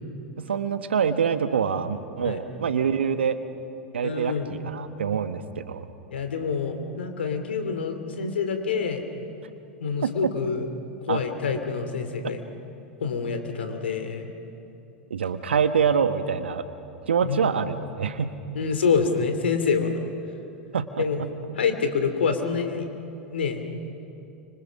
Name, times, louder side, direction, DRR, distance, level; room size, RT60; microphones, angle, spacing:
voice 1, 0.4-3.4 3.9-5.8 10.0-10.3 11.1-11.2 15.1-16.6 17.1-18.3 20.7-21.3, right 7 dB, 80° right, 10 dB, 1.3 m, -25 dB
voice 2, 4.0-4.5 6.1-9.0 9.8-10.7 11.0-12.4 13.0-14.3 17.2-17.6 18.5-19.9 21.0-21.2 21.5-22.9 23.3-23.7, left 5 dB, 80° left, 6 dB, 2.8 m, -26 dB
29.5 x 25.5 x 6.3 m, 2.8 s
hypercardioid pair, 90°, 6 cm